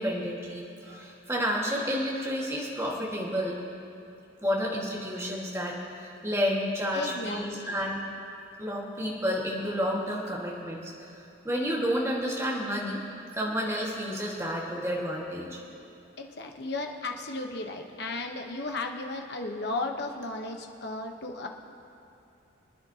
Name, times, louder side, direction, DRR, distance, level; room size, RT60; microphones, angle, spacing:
voice 1, 0.0-3.5 4.4-8.0 8.6-13.0 13.4-15.6, equal, 15° right, -4 dB, 1.6 m, -30 dB
voice 2, 6.9-7.8 16.2-21.5, left 2 dB, 55° left, 3 dB, 1.0 m, -35 dB
25.0 x 9.7 x 2.8 m, 2.6 s
head